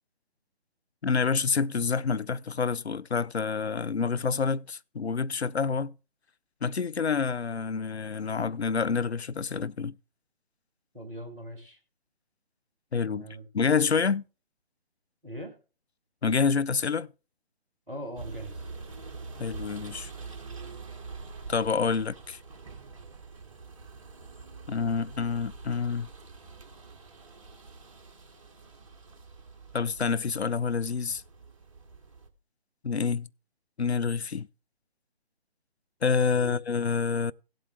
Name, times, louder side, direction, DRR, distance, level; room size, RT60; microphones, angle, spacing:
voice 1, 1.0-5.9 6.6-9.9 12.9-13.3 13.5-14.2 16.2-17.1 19.4-20.1 21.5-22.4 24.7-26.1 29.7-31.2 32.8-33.3 33.8-34.5 36.0-37.3, left 5 dB, 85° left, 0.5 m, -27 dB
voice 2, 10.9-11.8 13.1-13.4 15.2-15.5 17.9-18.6 36.4-36.6, right 1 dB, 5° right, 0.6 m, -40 dB
sound 1, 18.2-32.3, right 4 dB, 30° right, 1.1 m, -45 dB
17.5 x 7.7 x 3.2 m
figure-of-eight pair, 145°, 32 cm